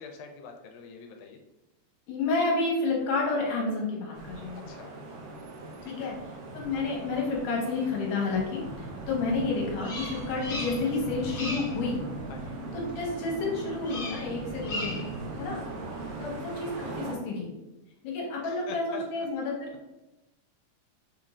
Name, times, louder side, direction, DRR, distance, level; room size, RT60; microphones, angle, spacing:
voice 1, 0.0-1.4 4.5-4.9 5.8-6.1 12.3-12.6 18.4-19.3, left 5 dB, 90° left, 3 dB, 2.3 m, -45 dB
voice 2, 2.1-4.6 5.9-6.2 6.5-12.0 12.7-15.0 15.4-15.6 16.2-17.5 18.0-19.7, left 3 dB, 75° left, -1 dB, 2.3 m, -30 dB
sound 1, 4.1-17.2, right 2 dB, 85° right, 1.6 m, -40 dB
sound 2, 9.2-16.4, right 2 dB, 55° right, 0.7 m, -42 dB
Bird vocalization bird call bird song, 9.8-11.0 11.3-11.8 13.8-14.3 14.6-15.1, left 1 dB, 50° left, 1.3 m, -37 dB
6.5 x 2.5 x 3.0 m, 0.98 s
omnidirectional pair, 4.0 m